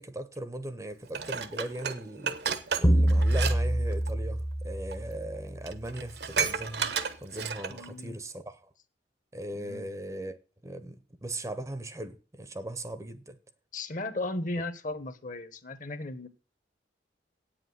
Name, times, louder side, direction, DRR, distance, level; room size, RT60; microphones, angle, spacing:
voice 1, 0.0-6.9 7.2-8.7 9.3-10.4 10.6-13.4, right 1 dB, 15° right, 0.7 m, -39 dB
Dishes pots and pans, 1.1-3.6 3.9-4.1 4.9-5.0 5.4-5.5 5.7-7.9 8.3-8.4, right 6 dB, 65° right, 1.0 m, -32 dB
sound 1, 2.8-5.6, right 1 dB, 20° left, 0.8 m, -26 dB
voice 2, 7.7-8.2 9.5-9.8 13.7-16.3, left 2 dB, 45° left, 1.2 m, -36 dB
9.0 x 7.8 x 7.8 m
head